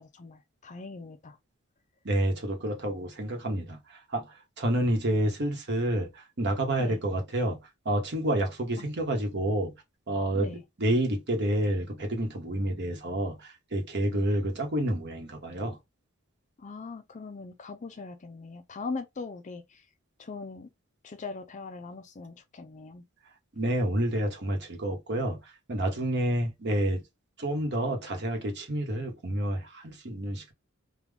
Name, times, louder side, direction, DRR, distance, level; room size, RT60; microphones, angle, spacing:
voice 1, 0.0-1.4 6.8-7.0 8.8-8.9 10.3-10.6 14.1-14.2 16.6-19.8 20.2-20.7 21.0-23.0, left 4 dB, 35° left, 0.4 m, -40 dB
voice 2, 2.0-7.6 7.8-9.7 10.1-15.8 23.5-27.0 27.4-30.5, right 1 dB, 50° right, 1.2 m, -29 dB
3.6 x 2.3 x 3.4 m
head